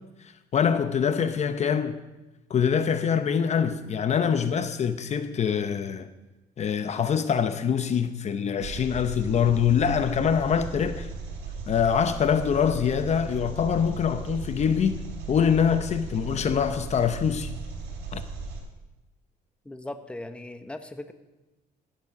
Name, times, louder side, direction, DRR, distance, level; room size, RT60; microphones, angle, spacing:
voice 1, 0.5-2.0 2.5-6.1 6.6-11.1 11.7-15.0 15.3-17.5 18.1-18.2, left 7 dB, 40° left, 0.8 m, -24 dB
Engine, 8.6-18.6, right 4 dB, 80° right, 3.4 m, -37 dB
voice 2, 19.6-21.1, left 1 dB, 5° left, 0.9 m, -38 dB
15.0 x 7.6 x 5.9 m
cardioid pair, 110°, 17 cm